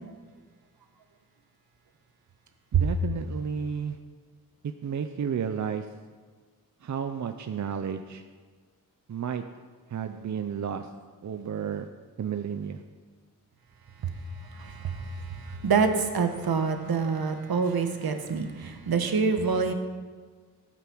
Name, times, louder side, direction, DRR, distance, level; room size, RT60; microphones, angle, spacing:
voice 1, 2.7-4.0 4.6-5.9 6.8-8.2 9.1-9.4 9.9-10.9 11.2-11.9 12.2-12.8, right 7 dB, 50° right, 7 dB, 0.6 m, -32 dB
voice 2, 14.3-19.7, right 5 dB, 80° right, 6 dB, 1.4 m, -26 dB
15.0 x 9.1 x 6.2 m, 1.5 s
wide cardioid pair, 175°, 36 cm